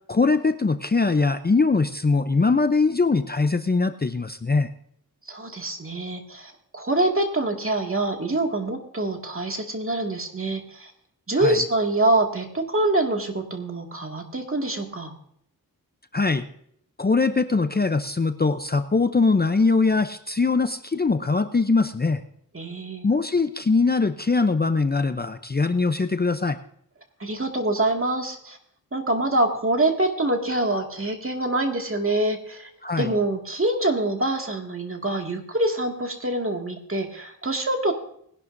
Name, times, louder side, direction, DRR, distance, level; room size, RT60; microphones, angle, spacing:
voice 1, 0.1-4.7 11.4-11.6 16.1-16.4 17.0-22.2 23.0-26.6 32.8-33.1, left 4 dB, 25° left, 9 dB, 0.6 m, -22 dB
voice 2, 5.3-10.9 11.3-15.1 22.5-23.1 27.2-28.6 28.9-32.7 33.0-37.9, right 2 dB, 35° right, 3 dB, 2.1 m, -25 dB
20.0 x 11.0 x 2.7 m, 0.69 s
wide cardioid pair, 55°, 36 cm